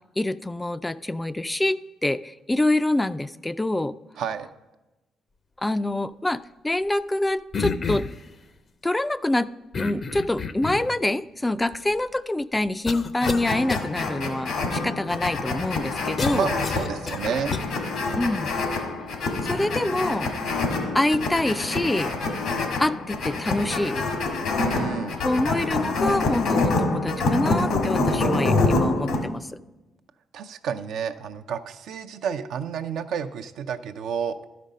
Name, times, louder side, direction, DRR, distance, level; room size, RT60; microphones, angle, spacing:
voice 1, 0.2-4.0 5.6-8.1 8.8-9.5 9.8-16.5 18.2-18.5 19.5-20.3 20.9-22.1 22.8-24.1 25.2-29.5, left 1 dB, 15° left, 13 dB, 0.4 m, -26 dB
voice 2, 4.2-4.5 16.3-17.5 24.6-25.2 30.3-34.4, right 7 dB, 75° right, 7 dB, 0.5 m, -30 dB
sound 1, 7.5-8.2 9.7-11.0 11.7-11.8 12.9-13.4 13.7-13.8 16.2-17.6, left 5 dB, 50° left, 0.7 m, -30 dB
sound 2, 13.2-29.2, left 3 dB, 75° left, 1.6 m, -26 dB
12.0 x 5.1 x 5.4 m, 1.0 s
supercardioid pair, 60°, 0 cm